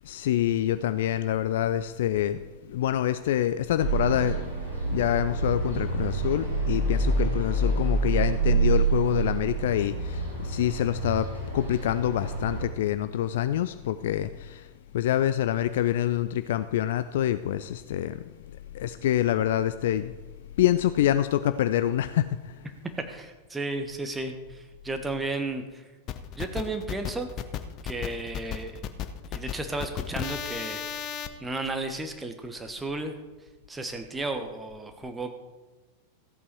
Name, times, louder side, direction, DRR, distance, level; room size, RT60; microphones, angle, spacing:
voice 1, 0.1-2.4 2.7-4.4 4.8-11.3 11.5-14.6 14.9-18.2 18.7-20.1 20.6-22.3, left 12 dB, 55° left, 12 dB, 0.4 m, -26 dB
sound 1, 3.8-12.6, right 3 dB, 80° right, 3.6 m, -27 dB
voice 2, 23.1-25.8 26.4-27.3 27.8-28.8 29.3-33.2 33.7-35.3, right 2 dB, 10° right, 6 dB, 1.2 m, -34 dB
sound 2, 26.1-31.3, left 9 dB, 35° left, 0.8 m, -34 dB
14.5 x 8.4 x 4.5 m, 1.2 s
figure-of-eight pair, 90°, 0 cm